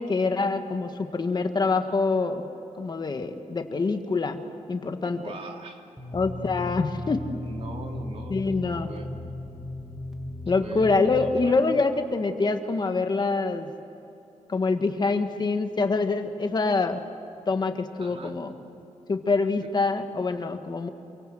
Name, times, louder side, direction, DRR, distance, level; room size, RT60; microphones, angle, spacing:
voice 1, 0.0-2.5 2.8-4.4 4.7-5.2 6.1-7.2 8.3-8.9 10.5-13.7 14.5-17.0 17.5-18.5 19.1-20.9, left 3 dB, 35° left, 6 dB, 1.6 m, -25 dB
voice 2, 5.1-5.8 7.4-8.4 8.9-9.1 10.6-11.5 18.0-18.3 19.5-19.7, right 3 dB, 55° right, 2 dB, 3.1 m, -41 dB
sound 1, 6.0-11.3, left 1 dB, 5° right, 2.9 m, -36 dB
28.0 x 24.5 x 7.8 m, 2.9 s
wide cardioid pair, 145°, 12 cm